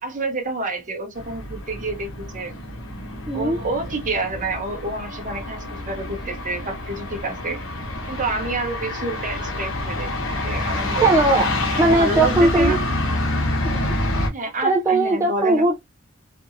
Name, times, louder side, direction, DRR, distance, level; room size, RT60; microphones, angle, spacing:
voice 1, 0.0-2.5 3.3-7.6 8.1-10.1 10.4-11.2 11.7-12.9 14.3-15.7, right 2 dB, 40° right, 0.8 m, -28 dB
sound 1, 1.2-14.3, left 1 dB, 85° left, 1.0 m, -27 dB
voice 2, 3.3-3.6 11.0-11.5 11.8-12.8 13.6-13.9 14.6-15.9, right 2 dB, 15° right, 0.4 m, -19 dB
2.7 x 2.6 x 2.4 m
head